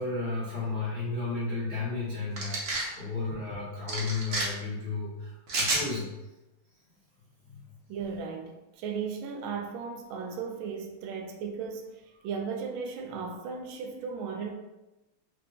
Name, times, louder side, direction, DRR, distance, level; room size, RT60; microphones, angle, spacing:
voice 1, 0.0-6.1 7.5-7.6, left 3 dB, 80° left, 0.5 m, -33 dB
sound 1, 2.4-2.9 3.9-4.4 5.5-5.8, right 2 dB, 60° right, 0.8 m, -29 dB
voice 2, 7.9-14.5, right 5 dB, 85° right, 1.4 m, -36 dB
3.4 x 3.0 x 2.7 m
omnidirectional pair, 2.2 m